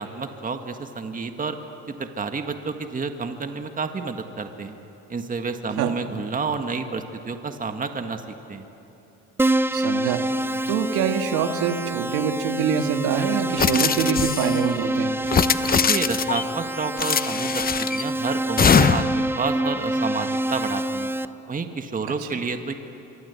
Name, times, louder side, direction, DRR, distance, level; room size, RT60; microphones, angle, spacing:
voice 1, 0.0-1.6 1.9-4.8 5.1-8.7 15.7-21.1 21.5-22.7, right 4 dB, 25° right, 6 dB, 1.7 m, -30 dB
Keyboard (musical), 9.4-21.3, right 1 dB, 5° right, 0.6 m, -26 dB
voice 2, 9.7-10.2 10.7-15.1 22.1-22.4, right 8 dB, 80° right, 6 dB, 2.0 m, -25 dB
sound 1, 13.6-14.6 15.2-16.4 17.0-18.0 18.6-19.2, left 6 dB, 25° left, 0.8 m, -21 dB
25.5 x 24.0 x 8.3 m, 3.0 s
cardioid pair, 105°, 36 cm